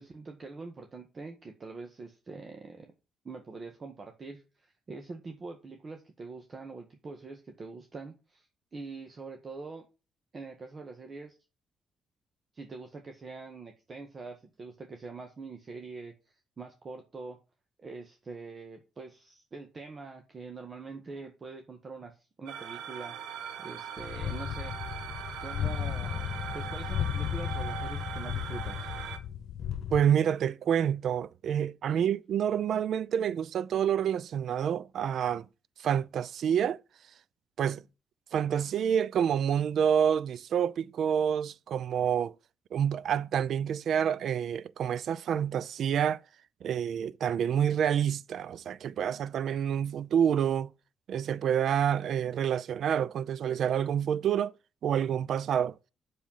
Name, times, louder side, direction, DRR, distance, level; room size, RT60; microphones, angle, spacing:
voice 1, 0.0-2.9 3.2-9.9 10.3-11.4 12.5-17.4 17.8-24.7 25.4-28.9 31.9-32.1, right 3 dB, 40° right, 1.6 m, -44 dB
sound 1, 22.5-29.2, right 9 dB, 90° right, 1.4 m, -40 dB
sound 2, 24.0-30.0, left 9 dB, 65° left, 1.2 m, -35 dB
voice 2, 29.9-35.5 35.8-36.8 37.6-37.8 38.3-42.3 42.7-46.2 46.6-50.7 51.1-54.5 54.8-55.7, right 8 dB, 65° right, 0.5 m, -28 dB
7.6 x 6.9 x 5.6 m
cardioid pair, 90°, 0 cm